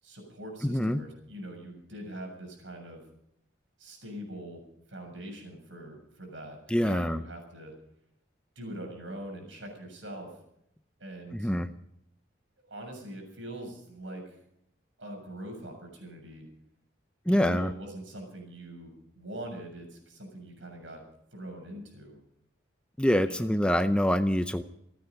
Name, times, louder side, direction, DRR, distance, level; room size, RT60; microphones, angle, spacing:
voice 1, 0.0-3.0 3.8-4.6 4.9-7.7 8.6-10.4 11.0-11.5 12.6-14.4 15.0-16.5 17.3-21.0 21.3-22.2 23.2-23.5, right 1 dB, 80° right, 3 dB, 7.1 m, -43 dB
voice 2, 0.6-1.0 6.7-7.2 11.3-11.7 17.3-17.7 23.0-24.6, equal, 5° left, 9 dB, 0.6 m, -25 dB
28.0 x 9.7 x 5.4 m, 0.75 s
head